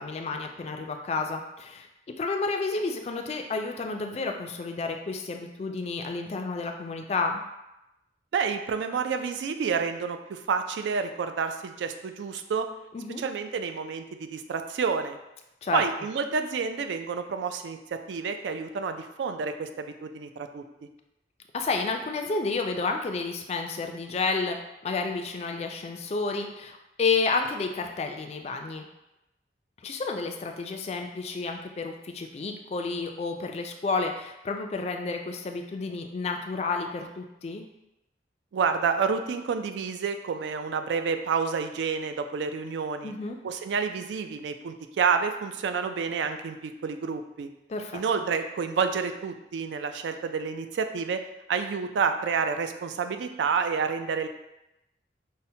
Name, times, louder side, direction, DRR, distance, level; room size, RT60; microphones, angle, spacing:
voice 1, 0.0-7.4 12.9-13.2 15.6-15.8 21.5-24.6 24.8-28.8 29.8-37.7 43.0-43.4 47.7-48.0, left 4 dB, 35° left, 4 dB, 0.3 m, -30 dB
voice 2, 8.3-12.7 13.2-15.2 15.7-20.6 38.5-43.1 43.4-47.5 47.9-54.3, right 5 dB, 90° right, 8 dB, 0.3 m, -29 dB
5.5 x 2.1 x 2.7 m, 0.92 s
head